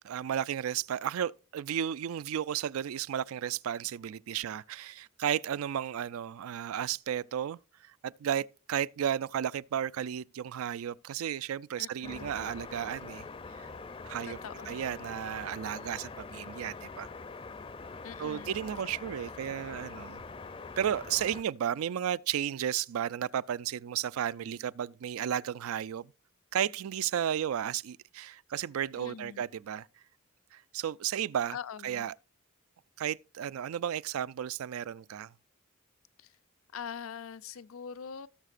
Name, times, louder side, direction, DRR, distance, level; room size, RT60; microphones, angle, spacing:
voice 1, 0.0-13.2 14.0-14.4 14.7-17.1 18.2-20.2 20.8-26.1 26.5-29.9 30.5-31.6 31.8-32.1 33.0-35.3, right 9 dB, 80° right, 0.3 m, -33 dB
voice 2, 11.8-12.3 14.2-14.8 18.0-18.6 29.0-29.4 31.5-32.1 36.2-36.3 36.7-38.3, left 7 dB, 75° left, 0.5 m, -43 dB
sound 1, 12.0-21.4, left 4 dB, 25° left, 0.4 m, -44 dB
17.0 x 6.5 x 2.5 m
head